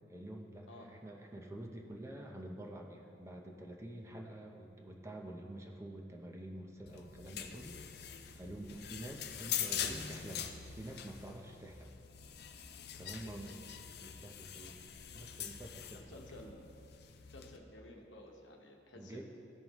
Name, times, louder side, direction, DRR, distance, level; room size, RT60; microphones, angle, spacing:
voice 1, 0.1-7.8 8.1-11.9 13.0-13.5 14.0-16.1 18.9-19.2, right 1 dB, 15° right, 1 dB, 0.6 m, -48 dB
sound 1, 6.9-17.6, left 9 dB, 60° left, 0.5 m, -44 dB
voice 2, 13.1-13.6 15.9-16.7 17.2-19.2, left 1 dB, 85° left, 1 dB, 1.1 m, -53 dB
14.5 x 5.5 x 3.0 m, 2.6 s
head